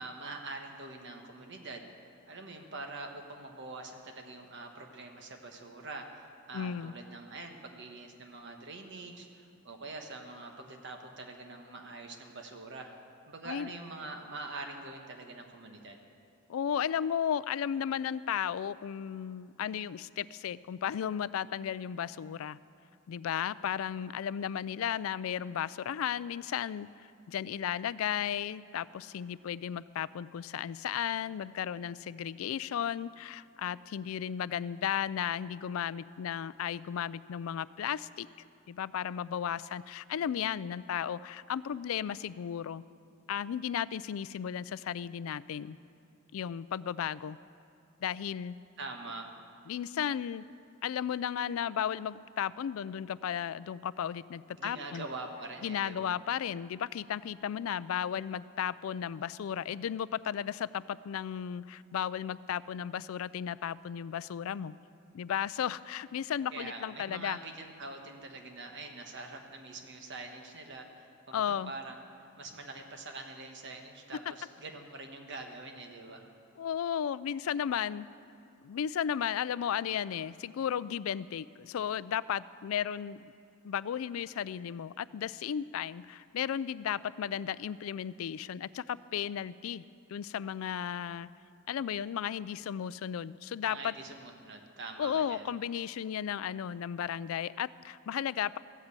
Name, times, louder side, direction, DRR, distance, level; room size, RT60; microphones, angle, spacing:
voice 1, 0.0-1.8 2.3-12.9 13.3-16.0 48.8-49.3 54.6-56.1 66.5-72.0 72.4-76.2 93.7-95.5, right 2 dB, 55° right, 4 dB, 1.3 m, -44 dB
voice 2, 6.5-6.9 13.4-13.7 16.5-22.6 23.1-38.3 38.7-42.8 43.3-45.8 46.3-47.4 48.0-48.6 49.7-50.5 50.8-55.0 55.6-64.7 65.1-67.4 71.3-71.7 76.6-78.1 78.6-83.3 83.6-89.8 90.1-91.3 91.7-93.9 95.0-98.6, left 9 dB, 75° left, 18 dB, 0.3 m, -34 dB
14.5 x 8.0 x 8.3 m, 2.5 s
head